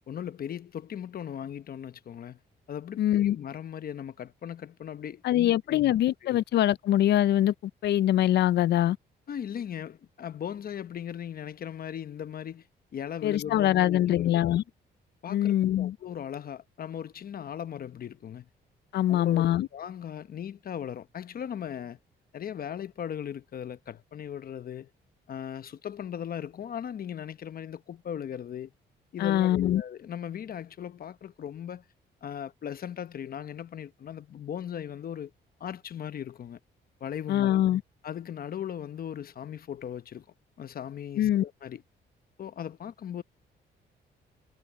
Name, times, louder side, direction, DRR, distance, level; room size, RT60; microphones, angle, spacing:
voice 1, 0.1-2.4 2.7-5.9 6.2-6.4 9.3-12.6 12.9-14.5 15.2-18.5 19.1-22.0 22.3-24.9 25.3-28.7 29.1-31.8 32.2-35.3 35.6-36.6 37.0-37.5 38.0-40.2 40.6-41.8 42.4-43.2, left 9 dB, 55° left, 0.9 m, -38 dB
voice 2, 3.0-3.4 5.2-9.0 13.2-14.6 15.3-15.9 18.9-19.7 29.2-29.8 37.3-37.8 41.2-41.4, left 12 dB, 70° left, 0.5 m, -24 dB
cardioid pair, 90°, 18 cm